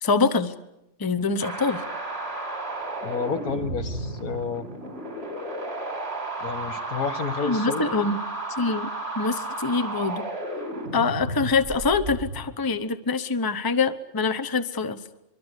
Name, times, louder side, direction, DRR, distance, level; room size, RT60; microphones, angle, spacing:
voice 1, 0.0-0.5 1.0-1.8 7.4-8.2 8.6-8.9 9.2-10.2 10.9-15.0, left 4 dB, 20° left, 12 dB, 0.9 m, -24 dB
sound 1, 1.4-12.4, right 2 dB, 45° right, 4.7 m, -33 dB
voice 2, 3.0-4.7 6.4-7.8, left 5 dB, 80° left, 7 dB, 2.3 m, -30 dB
24.5 x 24.0 x 8.2 m, 0.88 s
omnidirectional pair, 1.5 m